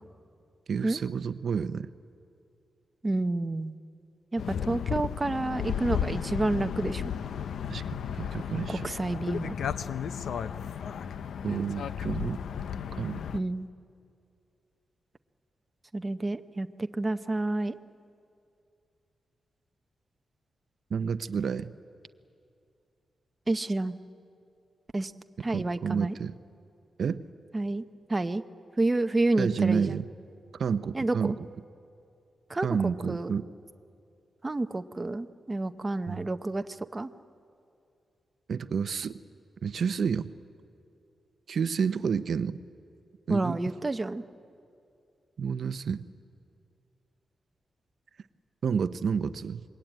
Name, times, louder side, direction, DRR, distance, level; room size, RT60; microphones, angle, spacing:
voice 1, 0.7-1.9 7.7-7.8 8.1-8.9 11.4-12.4 12.9-13.2 20.9-21.7 25.5-26.3 27.0-27.2 29.4-30.1 30.5-31.3 32.6-33.5 36.1-36.3 38.5-39.2 39.6-40.3 41.5-42.6 43.3-43.6 45.4-46.1 48.6-49.6, right 6 dB, 60° right, 12 dB, 0.6 m, -30 dB
voice 2, 3.0-3.7 4.3-7.0 8.7-9.5 13.3-13.7 15.9-16.7 16.9-17.8 23.5-24.0 24.9-25.1 25.4-26.1 27.5-27.8 28.1-28.4 28.8-30.0 30.9-31.4 32.5-32.7 33.1-33.3 34.4-36.6 36.9-37.1 43.3-44.2, right 2 dB, 20° right, 8 dB, 0.6 m, -29 dB
sound 1, 4.4-13.4, left 8 dB, 85° left, 0.6 m, -34 dB
26.0 x 21.5 x 9.1 m, 2.5 s
wide cardioid pair, 140°, 0 cm